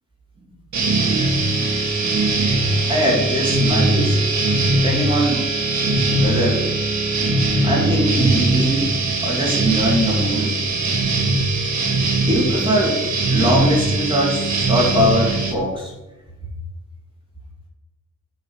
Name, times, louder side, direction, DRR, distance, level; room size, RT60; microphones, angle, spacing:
sound 1, 0.7-15.5, right 2 dB, 60° right, 2.0 m, -20 dB
voice 1, 2.9-4.2 4.6-5.5 6.1-6.7 7.6-8.9 9.2-10.6 12.2-13.0 13.3-15.9, equal, 15° right, -3 dB, 3.0 m, -21 dB
8.1 x 5.5 x 7.4 m, 1.0 s
wide cardioid pair, 155°, 32 cm